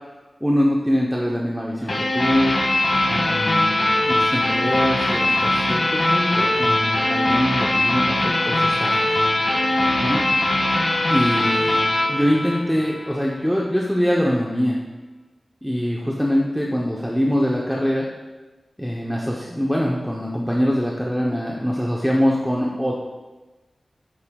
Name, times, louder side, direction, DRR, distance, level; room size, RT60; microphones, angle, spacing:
voice 1, 0.4-2.5 3.1-3.7 4.1-9.1 10.0-10.2 11.1-11.8 12.1-14.8 15.6-18.1 18.8-22.9, equal, ahead, -3 dB, 0.8 m, -23 dB
sound 1, 1.9-13.1, left 1 dB, 55° left, 1.8 m, -21 dB
8.6 x 7.6 x 2.4 m, 1.2 s
wide cardioid pair, 80°, 0 cm